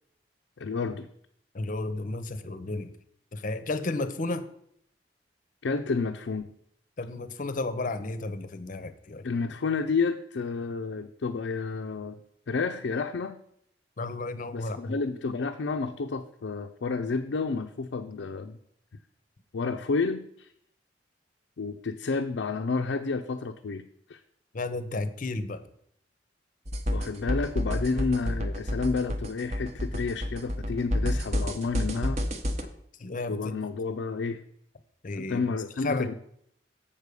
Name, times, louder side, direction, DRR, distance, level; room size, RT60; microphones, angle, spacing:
voice 1, 0.6-1.1 5.6-6.5 9.2-12.2 12.5-13.4 14.5-18.6 19.5-20.5 21.6-24.2 26.9-32.2 33.3-34.4 35.2-36.1, left 4 dB, 90° left, 4 dB, 0.5 m, -30 dB
voice 2, 1.5-2.9 3.3-4.4 7.0-9.3 14.0-15.0 24.5-25.6 33.0-33.5 35.0-35.5 35.8-36.1, left 2 dB, 45° left, 12 dB, 0.7 m, -32 dB
sound 1, 26.7-32.6, left 1 dB, 40° right, 0.8 m, -29 dB
7.3 x 4.8 x 6.7 m, 0.70 s
head